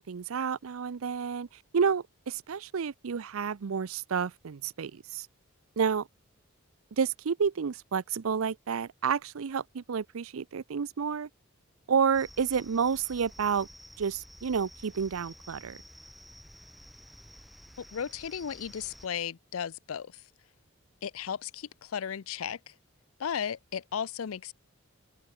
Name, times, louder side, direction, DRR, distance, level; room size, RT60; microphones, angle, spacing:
voice 1, 0.0-1.5 1.7-5.3 5.8-6.1 7.0-11.3 11.9-13.7 14.0-15.8, right 6 dB, 90° right, 0.5 m, -30 dB
sound 1, 12.1-19.1, equal, ahead, 2.2 m, -51 dB
voice 2, 17.8-20.2 21.0-22.8 23.2-24.5, left 8 dB, 85° left, 0.5 m, -35 dB
head